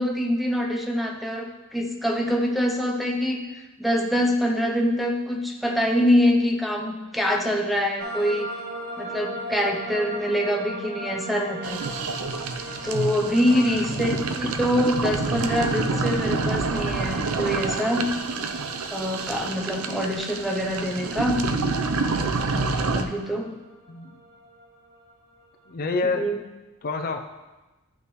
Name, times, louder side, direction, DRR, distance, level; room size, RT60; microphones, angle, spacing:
voice 1, 0.0-8.5 9.0-11.8 12.8-18.1 18.9-21.5 22.9-23.6 26.0-26.4, equal, ahead, 1 dB, 0.7 m, -25 dB
sound 1, 8.0-25.7, right 1 dB, 55° right, 1.3 m, -40 dB
sound 2, 11.6-23.0, right 3 dB, 80° right, 0.6 m, -28 dB
voice 2, 13.5-13.9 23.9-24.2 25.7-26.2 26.8-27.2, left 3 dB, 45° left, 5 dB, 0.5 m, -28 dB
11.5 x 5.7 x 3.1 m, 1.1 s
head